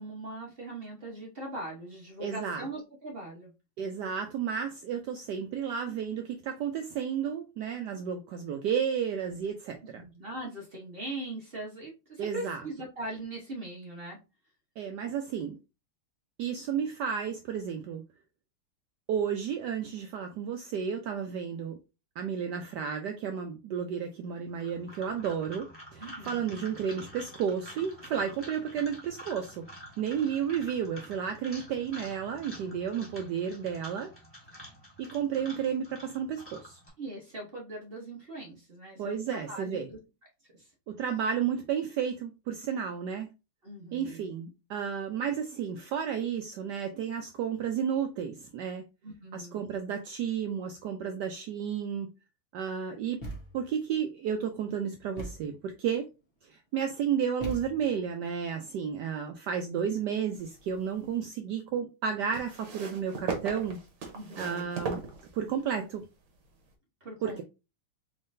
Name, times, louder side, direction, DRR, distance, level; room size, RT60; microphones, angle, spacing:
voice 1, 0.0-3.5 10.0-14.2 26.0-26.5 37.0-40.0 40.6-40.7 43.6-44.2 49.0-49.6 64.1-64.7 67.0-67.4, right 1 dB, 45° right, 0.8 m, -40 dB
voice 2, 2.2-2.7 3.8-10.0 12.2-12.6 14.8-15.6 16.4-18.0 19.1-21.8 22.2-29.6 30.0-34.1 35.0-36.8 39.0-39.9 40.9-43.3 43.9-48.8 49.3-52.1 52.5-53.3 53.5-56.1 56.4-63.8 64.4-65.0 65.3-66.0 67.2-67.4, right 7 dB, 80° right, 0.9 m, -32 dB
sound 1, 24.5-36.9, equal, 5° left, 1.5 m, -48 dB
Thump thud, 53.2-53.8 55.2-55.6 57.4-58.1, right 1 dB, 40° left, 1.3 m, -41 dB
sound 2, 60.3-61.2 62.3-65.8 66.7-66.8, right 5 dB, 65° right, 1.5 m, -38 dB
4.3 x 3.7 x 2.6 m
omnidirectional pair, 2.3 m